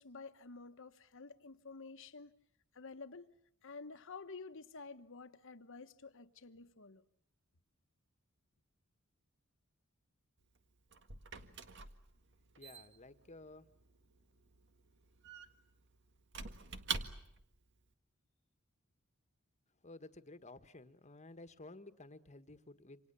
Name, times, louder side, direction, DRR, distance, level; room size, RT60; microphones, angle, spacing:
voice 1, 0.0-2.3 2.7-3.3 3.6-7.0, left 4 dB, 65° left, 1.3 m, -51 dB
Squeak / Wood, 10.4-17.6, right 5 dB, 55° right, 1.8 m, -47 dB
voice 2, 12.6-13.7 19.8-23.0, left 2 dB, 35° left, 1.5 m, -54 dB
28.0 x 27.0 x 7.0 m
head